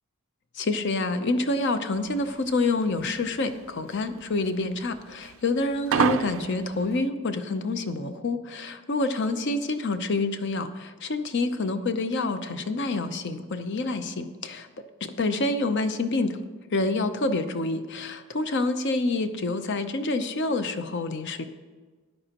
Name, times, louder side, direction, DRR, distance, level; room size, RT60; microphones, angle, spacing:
voice 1, 0.5-14.7 15.2-16.4 16.7-21.5, left 2 dB, 50° left, 9 dB, 0.6 m, -27 dB
sound 1, 2.0-7.0, right 7 dB, 60° right, 0.4 m, -29 dB
13.0 x 9.8 x 2.9 m, 1.4 s
head